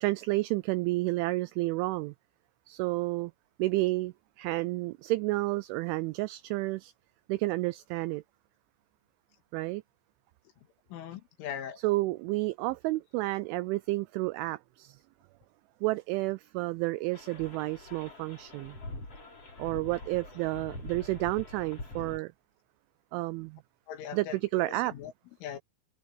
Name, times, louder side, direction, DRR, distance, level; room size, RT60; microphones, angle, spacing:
voice 1, 0.0-2.1 2.7-3.3 3.6-6.9 7.3-8.2 9.5-9.8 11.8-15.0 15.8-18.8 19.6-22.3 23.1-23.6 24.1-24.9, right 20 dB, 85° right, 2.7 m, -31 dB
voice 2, 10.9-11.8 23.9-25.1 25.4-25.6, left 9 dB, 70° left, 4.4 m, -40 dB
sound 1, 17.1-22.2, left 2 dB, 30° left, 7.0 m, -44 dB
omnidirectional pair, 5.9 m